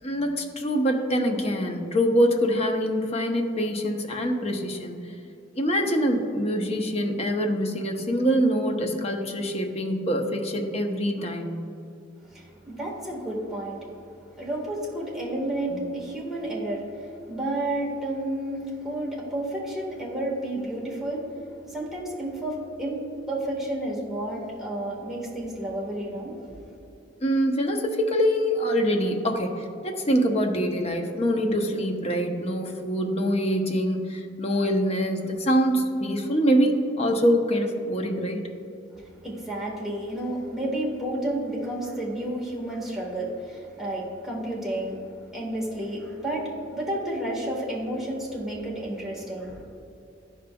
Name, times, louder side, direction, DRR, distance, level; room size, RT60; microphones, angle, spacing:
voice 1, 0.0-5.0 5.5-11.7 15.7-15.8 27.2-38.4, equal, 35° left, 3 dB, 0.7 m, -24 dB
voice 2, 12.3-13.9 14.4-26.4 38.9-45.0 45.3-49.6, right 1 dB, ahead, -5 dB, 1.6 m, -31 dB
12.0 x 5.2 x 2.3 m, 2.8 s
head